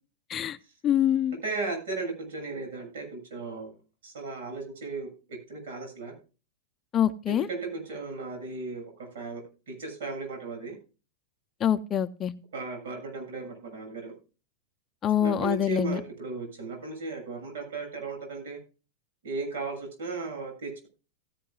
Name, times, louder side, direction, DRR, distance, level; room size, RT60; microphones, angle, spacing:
voice 1, 0.8-1.4 6.9-7.5 11.6-12.3 15.0-16.0, left 10 dB, 25° left, 9 dB, 0.6 m, -25 dB
voice 2, 1.4-3.7 4.0-6.1 7.3-10.8 12.5-14.1 15.2-18.6 19.2-20.9, right 3 dB, 85° right, 4 dB, 6.7 m, -36 dB
16.5 x 10.5 x 2.3 m, 0.33 s
supercardioid pair, 150°, 0 cm